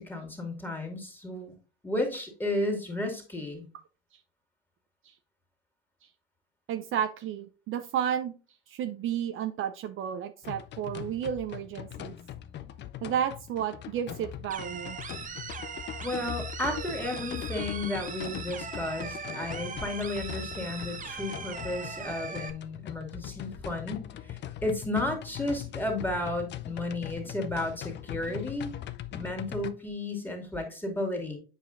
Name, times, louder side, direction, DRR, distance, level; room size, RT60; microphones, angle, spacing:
voice 1, 0.0-1.5 1.8-3.7 16.0-28.7 29.1-31.4, left 1 dB, 5° left, 2 dB, 2.3 m, -33 dB
voice 2, 6.7-8.3 8.7-12.1 13.0-15.0 16.7-16.9, right 9 dB, 45° right, 8 dB, 0.6 m, -32 dB
sound 1, 10.4-29.7, left 11 dB, 40° left, 0.5 m, -41 dB
sound 2, 14.5-22.5, right 5 dB, 25° right, 1.0 m, -40 dB
8.3 x 4.9 x 2.5 m, 0.35 s
hypercardioid pair, 80°, 29 cm